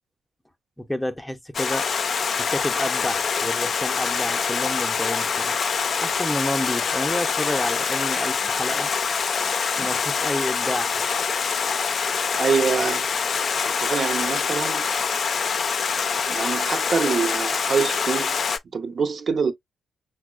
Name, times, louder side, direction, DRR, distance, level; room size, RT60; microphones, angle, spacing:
voice 1, 0.8-1.9 2.4-5.6 6.0-8.9 9.8-11.0, left 1 dB, 10° left, 0.6 m, -30 dB
Stream, 1.5-18.6, left 6 dB, 55° left, 0.4 m, -25 dB
voice 2, 12.4-13.1 13.7-14.9 16.3-18.4 18.7-19.5, right 5 dB, 55° right, 0.6 m, -25 dB
5.8 x 2.0 x 2.3 m
hypercardioid pair, 40°, 0 cm